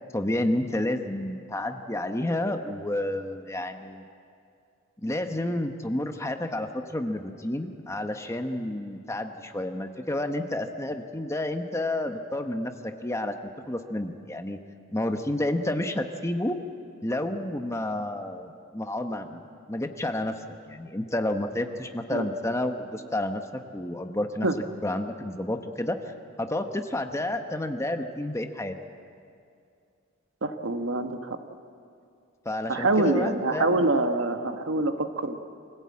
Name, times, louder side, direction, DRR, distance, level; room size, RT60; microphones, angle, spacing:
voice 1, 0.1-4.1 5.0-13.3 13.7-14.6 14.9-16.6 17.0-20.3 20.7-24.5 24.8-26.0 26.4-28.8 32.4-33.8, left 1 dB, 15° left, 6 dB, 1.0 m, -30 dB
voice 2, 30.4-31.4 32.7-35.4, right 2 dB, 80° right, 7 dB, 1.3 m, -25 dB
25.5 x 15.5 x 8.6 m, 2.4 s
head